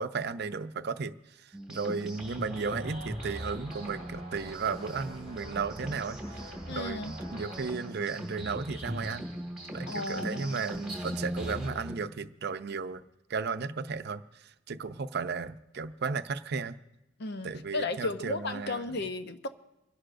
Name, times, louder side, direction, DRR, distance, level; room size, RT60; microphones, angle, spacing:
voice 1, 0.0-9.3 9.7-13.0 13.3-16.8 17.4-19.0, right 5 dB, 55° right, 10 dB, 0.6 m, -35 dB
sound 1, 1.5-11.9, equal, 5° right, 2.0 m, -40 dB
sound 2, 2.5-7.7, right 1 dB, 30° left, 2.6 m, -45 dB
voice 2, 6.6-7.2 9.9-10.7 17.2-19.5, left 3 dB, 60° left, 9 dB, 0.8 m, -34 dB
29.0 x 11.5 x 2.6 m, 0.96 s
head